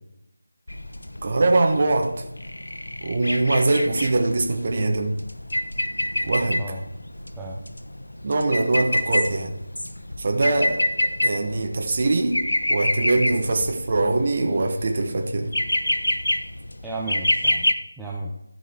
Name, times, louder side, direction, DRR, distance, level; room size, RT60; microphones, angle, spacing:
sound 1, 0.7-17.7, left 1 dB, 70° left, 0.8 m, -28 dB
voice 1, 1.2-2.2 3.0-5.2 6.2-6.6 8.2-9.5 10.2-10.9 11.2-12.4 12.7-15.5, right 2 dB, 35° right, 3 dB, 1.1 m, -22 dB
voice 2, 16.8-18.3, right 2 dB, 5° right, -3 dB, 0.6 m, -34 dB
13.0 x 5.4 x 4.5 m, 0.83 s
figure-of-eight pair, 160°, 0 cm